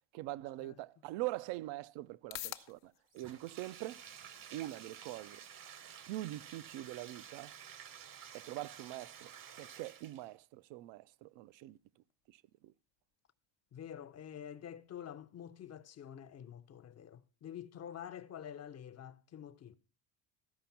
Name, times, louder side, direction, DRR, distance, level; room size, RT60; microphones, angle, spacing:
voice 1, 0.1-4.0 4.5-5.4 6.1-7.5 8.3-9.3 9.6-11.8 12.3-12.7, right 17 dB, 65° right, 0.6 m, -43 dB
sound 1, 1.7-17.8, left 15 dB, 70° left, 0.8 m, -57 dB
Bathtub (filling or washing), 3.1-10.4, right 8 dB, 45° right, 0.9 m, -52 dB
voice 2, 13.7-19.7, left 9 dB, 35° left, 0.6 m, -48 dB
13.5 x 5.1 x 5.7 m
cardioid pair, 105°, 48 cm